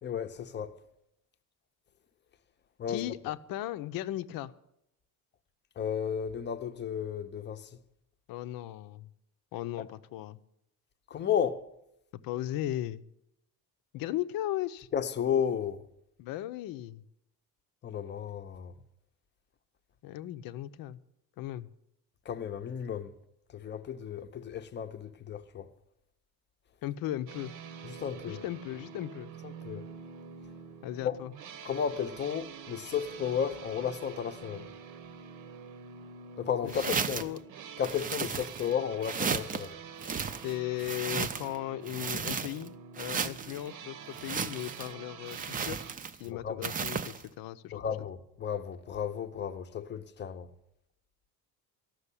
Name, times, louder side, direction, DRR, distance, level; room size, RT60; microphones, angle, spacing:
voice 1, 0.0-0.7 2.8-3.0 5.8-7.7 11.1-11.7 14.9-15.8 17.8-18.7 22.3-23.1 23.5-25.7 27.8-28.4 29.4-29.9 31.0-31.2 31.6-34.7 36.4-37.2 37.8-39.8 46.2-46.6 47.7-50.5, left 8 dB, 30° left, 0.7 m, -33 dB
voice 2, 2.9-4.5 8.3-9.1 9.5-10.4 12.2-13.0 13.9-14.9 16.2-17.0 20.0-21.0 21.4-21.7 26.8-27.5 28.3-29.3 30.8-31.3 36.6-36.9 37.2-37.4 40.4-45.8 46.2-47.8, left 14 dB, 70° left, 0.7 m, -37 dB
sound 1, 27.3-45.9, right 6 dB, 60° right, 0.9 m, -47 dB
sound 2, 36.7-37.4 37.8-38.7 39.0-39.6 40.0-41.6 41.9-42.7 43.0-43.6 44.1-44.9 45.3-46.2 46.6-47.2, right 6 dB, 25° right, 0.5 m, -34 dB
13.5 x 6.4 x 9.8 m
cardioid pair, 160°, 35 cm